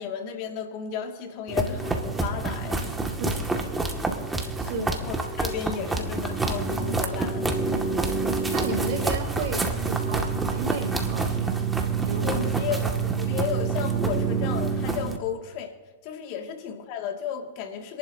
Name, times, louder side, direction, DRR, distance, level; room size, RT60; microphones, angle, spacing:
voice 1, 0.0-2.8 4.6-7.5 12.2-15.8 16.0-18.0, left 7 dB, 55° left, 3 dB, 2.2 m, -33 dB
sound 1, 1.5-15.2, right 4 dB, 10° right, 2.0 m, -27 dB
voice 2, 4.6-5.0 8.5-11.5 12.0-12.3, right 3 dB, 60° right, 1 dB, 3.6 m, -33 dB
27.0 x 11.5 x 2.8 m, 1.3 s
hypercardioid pair, 110°, 0 cm